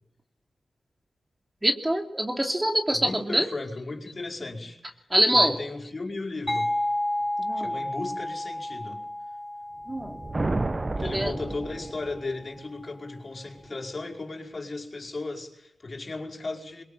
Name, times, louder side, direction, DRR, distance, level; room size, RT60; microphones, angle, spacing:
voice 1, 1.6-3.5 5.1-5.6 7.4-7.8 9.9-10.2 11.0-11.3, right 1 dB, 15° right, 2.9 m, -24 dB
voice 2, 2.9-4.8 5.3-6.7 7.5-9.0 10.9-16.8, left 3 dB, 45° left, 5.3 m, -35 dB
sound 1, 6.5-11.9, left 1 dB, 10° left, 5.3 m, -32 dB
sound 2, 9.9-12.4, right 2 dB, 35° right, 1.0 m, -31 dB
23.0 x 22.0 x 9.0 m
cardioid pair, 50°, 0 cm